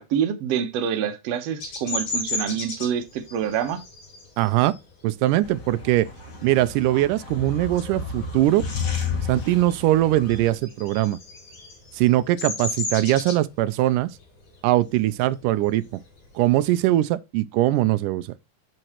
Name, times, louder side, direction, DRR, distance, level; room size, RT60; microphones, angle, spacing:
voice 1, 0.0-3.8, right 8 dB, 65° right, 1.9 m, -26 dB
Bird vocalization bird call bird song, 1.6-6.8 7.2-7.6 7.9-9.1 9.4-16.7, left 3 dB, 75° left, 4.1 m, -34 dB
voice 2, 4.4-4.8 5.0-6.1 6.4-8.7 9.3-11.2 11.9-14.1 14.6-16.0 16.4-18.3, right 15 dB, 90° right, 2.2 m, -21 dB
sound 1, 5.4-10.5, left 5 dB, 35° left, 1.6 m, -32 dB
7.7 x 7.5 x 3.0 m
omnidirectional pair, 3.6 m